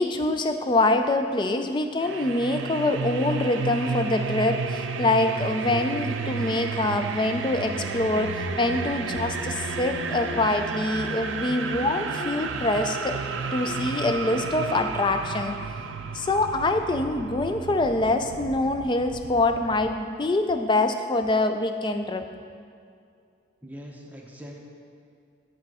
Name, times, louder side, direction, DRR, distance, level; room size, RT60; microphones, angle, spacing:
voice 1, 0.0-13.1 13.5-15.6 16.1-22.3, left 2 dB, 25° left, 7 dB, 0.3 m, -25 dB
sound 1, 2.0-20.0, right 5 dB, 75° right, 0.4 m, -32 dB
sound 2, 8.4-10.9 11.3-15.3, left 2 dB, 65° left, 0.6 m, -42 dB
voice 2, 23.6-24.6, equal, 10° right, -2 dB, 0.8 m, -42 dB
10.0 x 4.2 x 4.8 m, 2.3 s
head